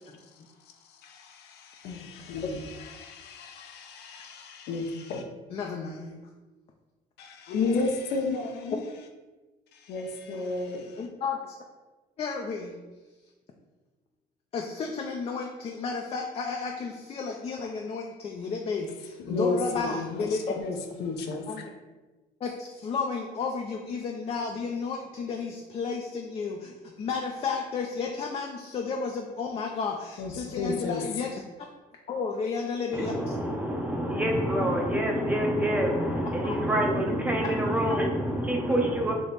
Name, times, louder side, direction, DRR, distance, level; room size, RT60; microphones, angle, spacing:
voice 1, 1.0-5.2 7.2-8.8 9.7-11.0 19.2-21.5 30.2-31.0, left 3 dB, 75° left, 3 dB, 0.6 m, -32 dB
voice 2, 5.5-6.2 11.0-11.6 12.2-12.8 14.5-20.6 21.5-21.7 22.4-31.4 32.1-33.3 36.4-36.5, left 5 dB, 35° left, 1 dB, 0.4 m, -32 dB
voice 3, 32.9-39.1, equal, 10° right, 1 dB, 0.6 m, -26 dB
3.5 x 2.9 x 4.0 m, 1.2 s
cardioid pair, 110°, 17 cm